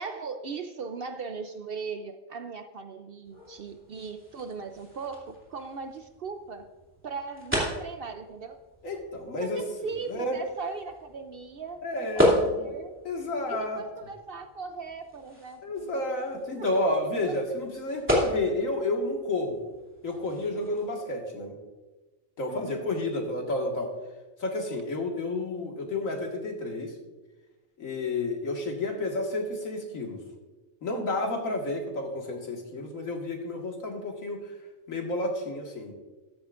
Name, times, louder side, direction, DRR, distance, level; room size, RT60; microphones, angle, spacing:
voice 1, 0.0-6.7 7.0-8.6 9.4-13.0 13.5-16.1 16.6-17.4 22.5-22.9, right 5 dB, 60° right, 8 dB, 0.6 m, -39 dB
sound 1, 3.2-20.9, equal, 10° right, 2.7 m, -34 dB
voice 2, 8.8-9.6 10.1-10.4 11.8-12.7 13.0-13.8 15.6-19.6 20.0-21.6 22.4-23.9 24.4-26.9 27.8-30.2 30.8-34.4 34.9-35.9, left 2 dB, 80° left, 1 dB, 2.1 m, -31 dB
14.0 x 12.0 x 2.5 m, 1.2 s
omnidirectional pair, 1.4 m